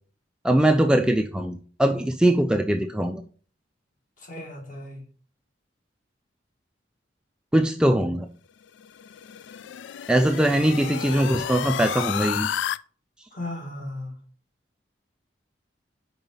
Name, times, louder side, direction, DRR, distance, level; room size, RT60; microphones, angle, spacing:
voice 1, 0.4-3.2 7.5-8.3 10.1-12.5, right 1 dB, 5° right, 0.3 m, -21 dB
voice 2, 4.2-5.0 10.6-11.2 13.3-14.1, left 1 dB, 45° left, 2.1 m, -37 dB
sound 1, 8.8-12.8, left 9 dB, 75° left, 0.3 m, -31 dB
5.7 x 4.8 x 5.4 m
head